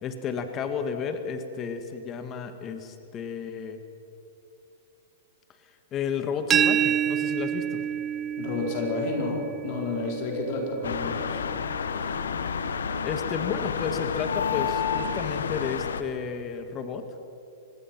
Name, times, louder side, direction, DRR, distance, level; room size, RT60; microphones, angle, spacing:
voice 1, 0.0-3.8 5.9-7.8 13.0-17.0, left 6 dB, 30° left, 7 dB, 1.8 m, -32 dB
sound 1, 6.5-12.3, right 9 dB, 25° right, 0.4 m, -29 dB
voice 2, 8.4-11.4, left 3 dB, 50° left, 1 dB, 4.4 m, -30 dB
sound 2, 10.8-16.0, left 6 dB, 85° left, 1.2 m, -30 dB
24.0 x 20.0 x 6.1 m, 2.7 s
hypercardioid pair, 120°, 0 cm